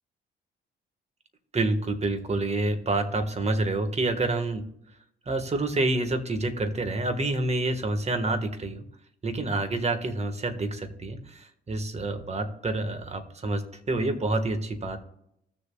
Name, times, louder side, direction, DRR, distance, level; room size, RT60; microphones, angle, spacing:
voice 1, 1.5-4.6 5.3-8.8 9.2-15.0, right 2 dB, 35° right, 8 dB, 1.5 m, -28 dB
16.0 x 6.8 x 2.3 m, 0.76 s
cardioid pair, 90°, 20 cm